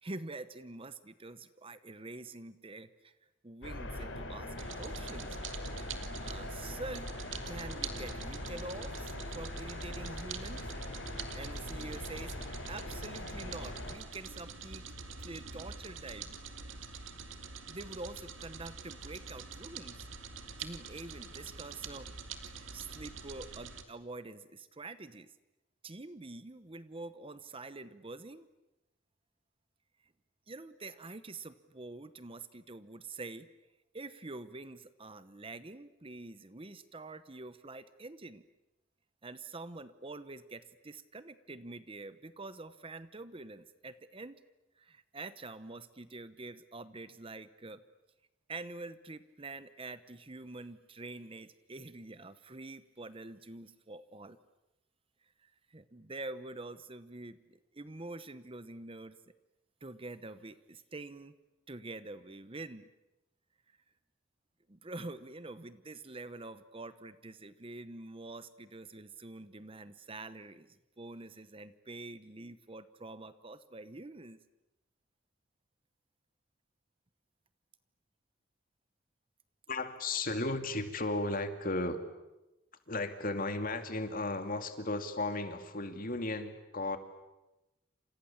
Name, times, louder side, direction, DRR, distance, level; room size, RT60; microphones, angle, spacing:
voice 1, 0.0-5.4 5.8-7.1 7.5-10.7 11.3-12.4 12.7-14.8 15.2-16.4 17.7-20.1 20.6-22.1 22.5-25.3 25.8-28.5 30.5-33.5 33.9-38.5 39.2-44.4 44.8-47.8 48.5-54.4 55.4-59.2 59.8-61.3 61.7-62.9 63.7-63.8 64.7-74.4, right 2 dB, 30° right, 13 dB, 1.0 m, -46 dB
sound 1, 3.6-14.0, left 1 dB, 70° left, 3.8 m, -41 dB
sound 2, 4.6-23.8, right 5 dB, 90° right, 2.3 m, -46 dB
voice 2, 79.7-82.0 82.9-87.0, left 2 dB, 45° left, 7 dB, 2.5 m, -35 dB
29.5 x 27.5 x 7.2 m, 0.98 s
head